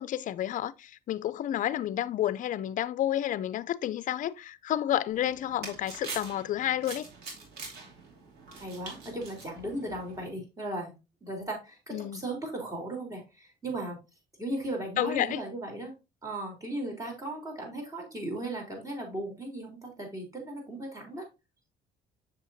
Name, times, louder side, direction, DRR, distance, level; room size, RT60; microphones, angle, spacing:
voice 1, 0.0-7.1 11.9-12.2 15.0-15.4, left 12 dB, 50° left, 0.5 m, -30 dB
sound 1, 5.1-10.3, right 3 dB, 70° right, 2.7 m, -44 dB
voice 2, 8.5-14.0 14.4-15.9 16.2-21.3, right 1 dB, 20° right, 3.5 m, -37 dB
7.3 x 6.6 x 2.7 m
cardioid pair, 110°, 17 cm